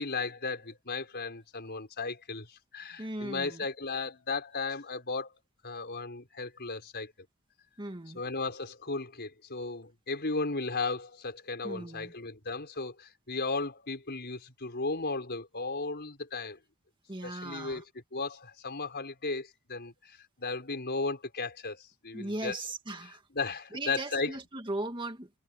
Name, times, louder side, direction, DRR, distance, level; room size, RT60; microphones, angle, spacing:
voice 1, 0.0-5.3 5.6-7.1 8.2-16.6 17.2-17.8 18.1-22.6 23.3-24.3, left 3 dB, 50° left, 5.4 m, -35 dB
voice 2, 3.0-3.6 7.8-8.2 11.6-12.1 17.1-17.8 22.1-23.2 23.7-25.3, right 2 dB, 20° right, 2.2 m, -38 dB
head